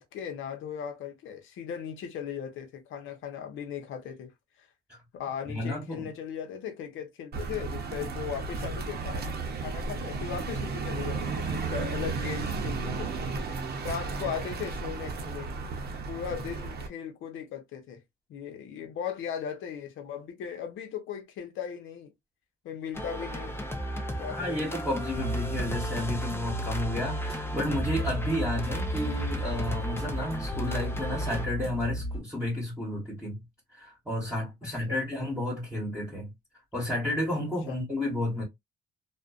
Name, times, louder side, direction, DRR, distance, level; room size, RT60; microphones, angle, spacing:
voice 1, 0.0-4.3 4.6-4.7 5.1-9.3 9.6-13.1 13.8-15.5 16.1-18.0 18.3-22.1 22.6-23.6 24.2-24.6 34.9-35.0 37.7-37.8, left 8 dB, 80° left, 0.7 m, -37 dB
voice 2, 5.5-6.1 24.3-33.4 33.7-36.3 36.7-38.4, left 1 dB, 5° right, 1.2 m, -32 dB
sound 1, 7.3-16.9, right 4 dB, 55° right, 0.7 m, -34 dB
sound 2, 22.9-31.5, equal, 10° left, 0.5 m, -35 dB
sound 3, 25.1-32.2, equal, 30° left, 1.1 m, -34 dB
2.5 x 2.2 x 2.3 m
cardioid pair, 90°, 20 cm